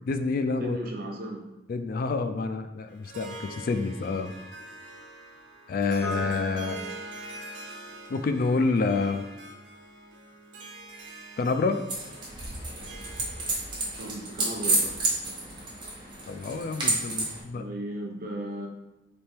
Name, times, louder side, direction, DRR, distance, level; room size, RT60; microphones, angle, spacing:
voice 1, 0.1-0.8 1.7-4.3 5.7-6.8 8.1-9.2 11.4-11.8 16.3-17.6, left 4 dB, 50° left, 8 dB, 0.3 m, -28 dB
voice 2, 0.6-1.4 14.0-15.0 17.5-18.7, right 1 dB, 55° right, 1 dB, 0.7 m, -35 dB
Harp, 2.9-13.8, right 2 dB, 90° right, 0.6 m, -45 dB
Piano, 6.0-12.7, right 1 dB, 75° right, 1.1 m, -43 dB
sound 1, 11.9-17.4, right 2 dB, 25° right, 1.1 m, -30 dB
3.4 x 3.2 x 4.4 m, 0.99 s
head